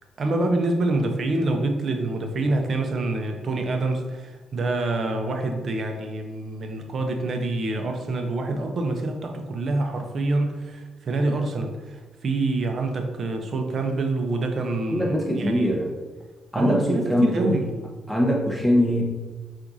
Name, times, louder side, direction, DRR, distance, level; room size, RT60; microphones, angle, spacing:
voice 1, 0.2-15.8 16.5-17.7, right 2 dB, 50° right, 4 dB, 0.6 m, -26 dB
voice 2, 14.9-15.9 16.5-17.6 18.1-19.0, equal, ahead, -2 dB, 1.0 m, -22 dB
5.8 x 2.5 x 2.7 m, 1.3 s
cardioid pair, 90°, 0 cm